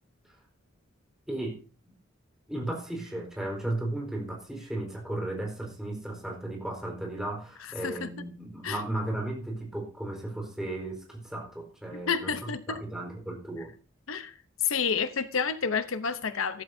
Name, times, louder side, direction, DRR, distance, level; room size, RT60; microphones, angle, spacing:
voice 1, 1.3-1.6 2.5-13.7, right 1 dB, 5° right, 4.3 m, -35 dB
voice 2, 11.9-12.8 14.1-14.3 14.6-16.6, left 6 dB, 85° left, 0.8 m, -29 dB
15.0 x 13.5 x 2.7 m
head